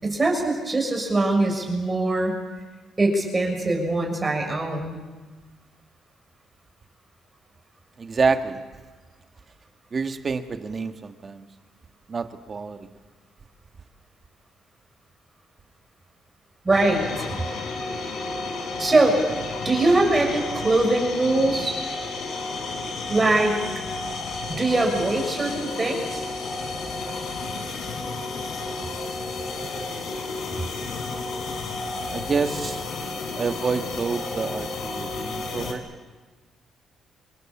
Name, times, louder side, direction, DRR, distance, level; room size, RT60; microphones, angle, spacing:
voice 1, 0.0-2.3 3.0-5.0 16.6-17.3 18.8-19.2 19.6-21.8 23.1-23.6 24.5-26.2, right 2 dB, 25° right, 2 dB, 6.6 m, -22 dB
voice 2, 8.0-8.6 9.9-11.5 12.1-12.9 32.1-32.8 33.3-35.8, right 4 dB, 40° right, 7 dB, 1.9 m, -27 dB
sound 1, 16.7-35.7, left 3 dB, 70° left, 4.7 m, -32 dB
26.5 x 22.5 x 7.3 m, 1.3 s
cardioid pair, 90°, 0 cm